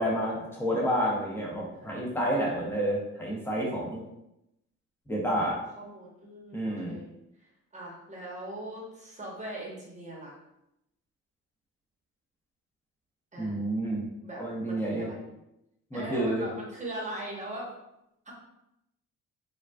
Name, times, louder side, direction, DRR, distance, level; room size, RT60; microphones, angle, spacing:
voice 1, 0.0-4.0 5.1-5.6 6.5-7.0 13.4-14.0 14.4-15.1 15.9-16.5, right 1 dB, 10° left, -3 dB, 0.9 m, -29 dB
voice 2, 1.7-2.4 5.8-7.1 7.7-10.3 13.3-13.6 14.2-15.3 15.9-17.7 18.3-18.4, right 1 dB, 25° right, -3 dB, 1.0 m, -40 dB
3.7 x 2.3 x 2.3 m, 0.84 s
cardioid pair, 90°, 30 cm